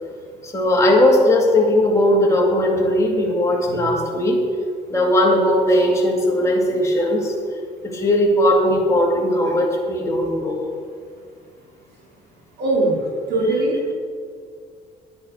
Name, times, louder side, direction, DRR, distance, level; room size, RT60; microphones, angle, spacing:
voice 1, 0.4-4.4 4.9-7.3 7.8-10.6, left 1 dB, 15° left, -2 dB, 2.2 m, -18 dB
voice 2, 12.6-13.8, right 2 dB, 70° right, -2 dB, 3.5 m, -21 dB
9.9 x 8.6 x 6.2 m, 2.1 s
cardioid pair, 110°, 17 cm